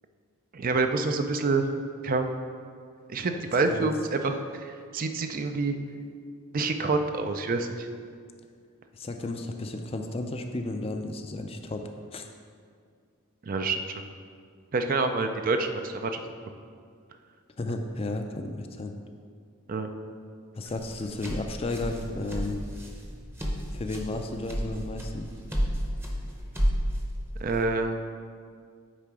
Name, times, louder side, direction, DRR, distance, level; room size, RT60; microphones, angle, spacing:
voice 1, 0.5-1.6 2.0-2.3 3.1-5.7 6.5-7.9 13.5-13.8 14.7-16.2 19.7-19.9 27.4-28.0, right 3 dB, 40° right, 7 dB, 0.4 m, -27 dB
voice 2, 8.9-12.3 17.6-18.9 20.6-22.6 23.7-25.3, left 2 dB, 25° left, 5 dB, 0.4 m, -33 dB
sound 1, 20.7-27.6, equal, 10° right, 0.8 m, -32 dB
9.2 x 3.8 x 4.7 m, 2.2 s
head